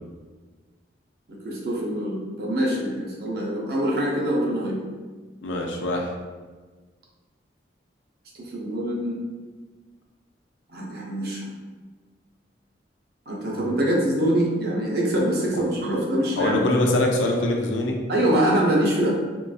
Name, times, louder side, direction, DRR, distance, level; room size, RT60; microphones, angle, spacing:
voice 1, 1.4-4.8 8.4-9.2 10.7-11.5 13.3-16.6 18.1-19.1, right 1 dB, 55° right, -3 dB, 0.6 m, -24 dB
voice 2, 5.4-6.1 13.5-13.7 15.6-15.7 16.4-17.9, left 1 dB, 85° left, 1 dB, 0.5 m, -24 dB
3.7 x 2.5 x 2.3 m, 1.4 s
head